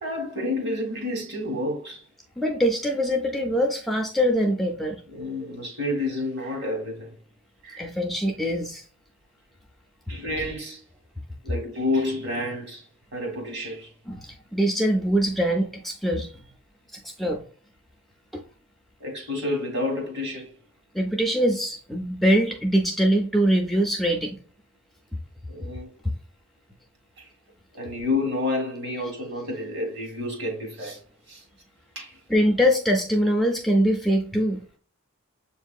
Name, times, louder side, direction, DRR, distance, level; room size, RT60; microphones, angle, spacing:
voice 1, 0.0-2.1 5.1-7.1 7.6-7.9 10.1-10.8 11.4-12.8 13.1-13.9 19.0-20.5 25.5-25.9 27.2-27.3 27.7-31.0 31.3-31.4 31.9-32.2, left 2 dB, 50° right, 1.4 m, -29 dB
voice 2, 2.4-5.0 7.8-8.9 14.1-16.3 16.9-17.4 18.3-18.4 20.9-24.4 32.3-34.6, equal, ahead, 0.3 m, -23 dB
7.0 x 2.6 x 2.3 m
head